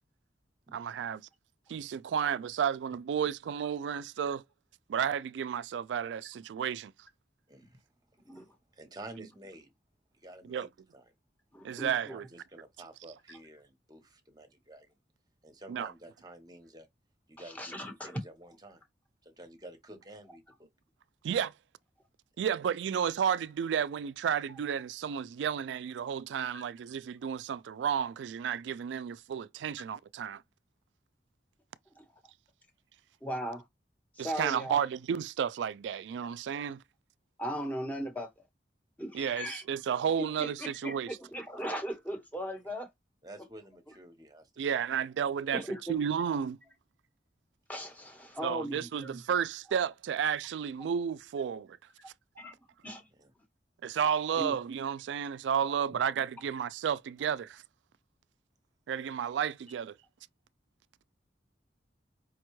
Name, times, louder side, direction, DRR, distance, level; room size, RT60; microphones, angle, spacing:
voice 1, 0.7-1.2 1.7-4.4 4.9-6.9 10.4-10.7 11.6-12.3 15.7-15.9 21.2-21.5 22.4-30.4 34.2-36.8 39.1-41.2 44.6-45.6 45.9-46.6 48.4-51.8 53.8-57.6 58.9-60.0, right 8 dB, 85° right, 0.3 m, -32 dB
voice 2, 7.5-7.8 8.3-8.5 8.7-9.7 10.2-10.7 10.9-11.0 12.1-14.9 15.4-16.9 17.3-18.8 19.2-20.7 43.2-44.5 53.1-53.3 55.9-56.0, right 1 dB, 20° right, 0.9 m, -50 dB
voice 3, 11.5-12.1 17.4-18.2 26.5-26.6 32.0-32.1 33.2-33.6 34.2-34.8 37.4-38.3 39.0-39.6 40.2-42.9 45.5-46.0 47.7-49.1 52.4-52.5 52.8-53.0 54.4-54.5, equal, 10° left, 0.9 m, -38 dB
5.0 x 2.2 x 3.0 m
head